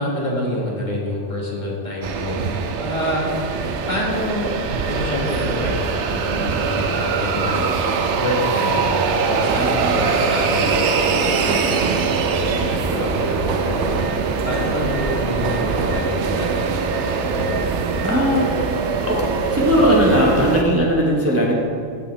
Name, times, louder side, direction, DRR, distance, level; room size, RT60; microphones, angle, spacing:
voice 1, 0.0-3.3 3.9-4.5 4.9-7.7 8.2-12.8 13.2-16.8, left 1 dB, 40° left, -3 dB, 1.7 m, -27 dB
sound 1, 2.0-20.6, right 5 dB, 75° right, 0.9 m, -22 dB
voice 2, 9.6-10.0 12.9-13.2 18.0-18.5 19.0-19.2 19.5-21.5, equal, 15° right, -2 dB, 0.8 m, -19 dB
14.0 x 5.5 x 3.2 m, 2.6 s
omnidirectional pair, 1.2 m